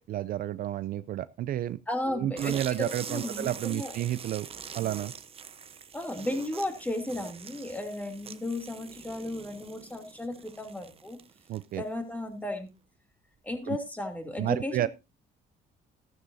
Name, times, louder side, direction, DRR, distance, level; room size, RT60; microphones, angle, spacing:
voice 1, 0.0-1.8 2.1-4.5 4.7-5.1 11.5-11.8 13.7-13.8 14.4-14.9, right 13 dB, 60° right, 16 dB, 0.5 m, -31 dB
voice 2, 1.9-4.0 5.9-11.2 11.8-12.7 13.4-14.9, left 1 dB, 10° left, 3 dB, 2.9 m, -34 dB
sound 1, 2.4-11.9, right 7 dB, 35° right, 0.9 m, -44 dB
13.5 x 12.5 x 2.7 m, 0.27 s
cardioid pair, 110°, 17 cm